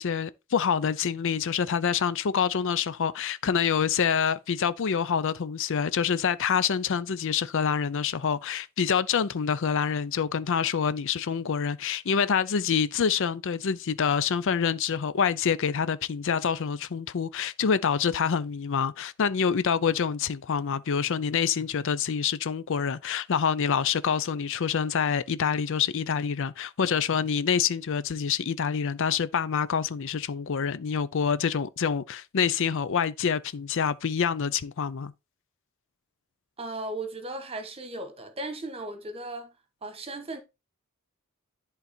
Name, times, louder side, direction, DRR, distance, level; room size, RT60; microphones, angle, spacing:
voice 1, 0.0-35.1, left 7 dB, 60° left, 0.5 m, -26 dB
voice 2, 36.6-39.5 39.8-40.4, right 2 dB, 25° right, 1.3 m, -36 dB
11.0 x 3.9 x 4.3 m
head